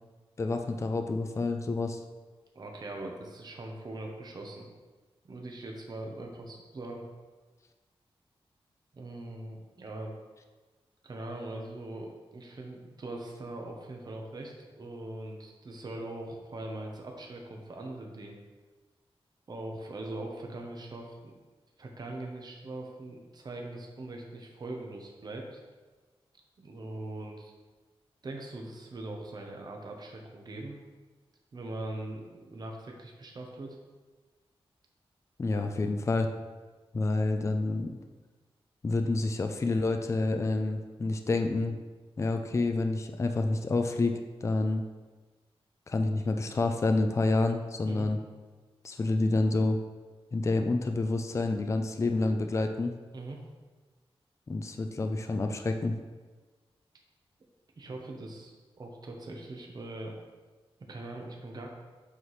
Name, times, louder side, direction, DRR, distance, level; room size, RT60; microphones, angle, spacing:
voice 1, 0.4-2.0 35.4-36.3 36.9-38.0 38.8-41.8 42.2-44.8 45.9-48.2 48.8-49.8 50.3-53.0 54.5-56.0, left 2 dB, 30° left, 6 dB, 0.4 m, -28 dB
voice 2, 2.5-4.7 5.3-7.0 8.9-10.1 11.0-18.4 19.5-21.3 21.8-25.6 26.6-27.5 28.2-30.8 31.5-33.8 47.8-48.1 53.1-53.4 57.8-60.2 60.9-61.7, right 2 dB, 45° right, 1 dB, 0.9 m, -41 dB
7.9 x 5.7 x 3.1 m, 1.3 s
wide cardioid pair, 165°, 10 cm